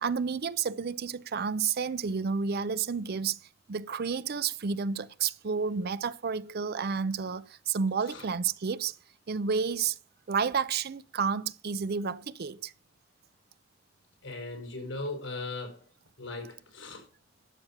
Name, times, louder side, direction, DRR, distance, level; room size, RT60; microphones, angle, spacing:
voice 1, 0.0-3.4 3.7-8.9 9.3-10.0 10.3-12.7, right 5 dB, 55° right, 0.5 m, -30 dB
voice 2, 14.2-15.8 16.2-17.0, left 2 dB, 75° left, 4.8 m, -38 dB
12.5 x 7.2 x 5.8 m
head